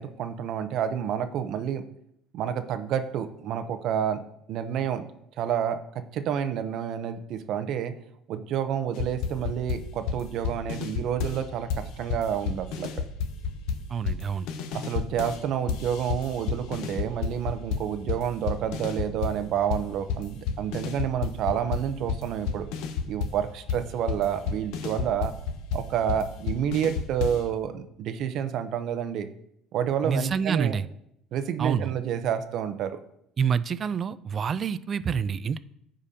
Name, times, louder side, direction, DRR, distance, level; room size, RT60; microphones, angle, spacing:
voice 1, 0.0-1.8 2.3-4.2 4.5-5.0 5.4-5.8 6.1-7.9 8.3-12.9 14.7-22.7 23.1-25.3 25.7-29.3 29.7-30.8 31.3-33.0, right 9 dB, 55° right, 9 dB, 0.7 m, -29 dB
sound 1, 9.0-11.4 11.7-15.4 15.7-19.4 19.7-27.5, left 6 dB, 80° left, 0.8 m, -31 dB
voice 2, 13.9-14.5 30.0-30.9 31.6-31.9 33.4-35.6, right 6 dB, 35° right, 16 dB, 0.3 m, -27 dB
14.5 x 5.1 x 2.8 m, 0.74 s
cardioid pair, 135°, 0 cm